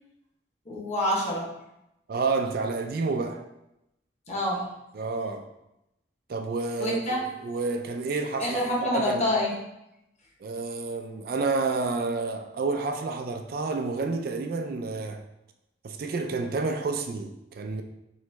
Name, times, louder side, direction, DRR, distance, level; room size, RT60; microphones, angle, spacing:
voice 1, 0.7-1.5 4.3-4.6 6.8-7.2 8.4-9.5, left 1 dB, 35° left, -4 dB, 1.1 m, -26 dB
voice 2, 2.1-3.4 4.9-5.4 6.3-9.3 10.4-15.2 15.8-17.8, right 3 dB, 50° right, 5 dB, 0.3 m, -29 dB
3.1 x 3.0 x 4.5 m, 0.87 s
head